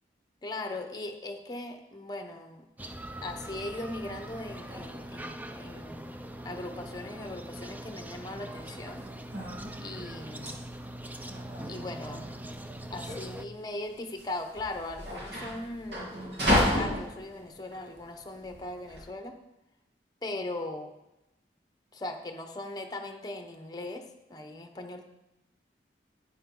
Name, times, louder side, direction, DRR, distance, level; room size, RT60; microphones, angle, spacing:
voice 1, 0.4-2.7 3.2-6.2 6.4-9.1 9.8-10.5 11.7-12.2 12.9-16.2 16.4-19.4 20.2-20.9 21.9-25.0, left 2 dB, 25° left, 5 dB, 1.0 m, -39 dB
sound 1, 2.8-13.5, right 1 dB, 10° right, 0.5 m, -42 dB
sound 2, 9.0-19.0, left 1 dB, 75° right, 3.5 m, -32 dB
12.0 x 9.4 x 3.9 m, 0.94 s
head